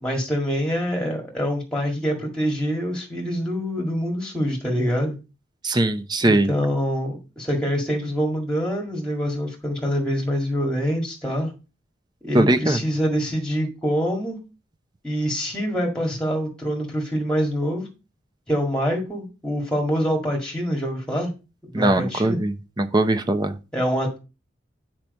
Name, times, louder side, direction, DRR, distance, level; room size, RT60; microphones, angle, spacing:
voice 1, 0.0-5.2 6.2-11.5 12.2-14.4 15.0-17.9 18.5-21.3 21.7-22.4 23.7-24.2, equal, 5° left, 1.8 m, -25 dB
voice 2, 5.6-6.5 12.3-12.8 21.7-23.6, right 2 dB, 25° right, 0.7 m, -20 dB
8.9 x 4.5 x 5.2 m
head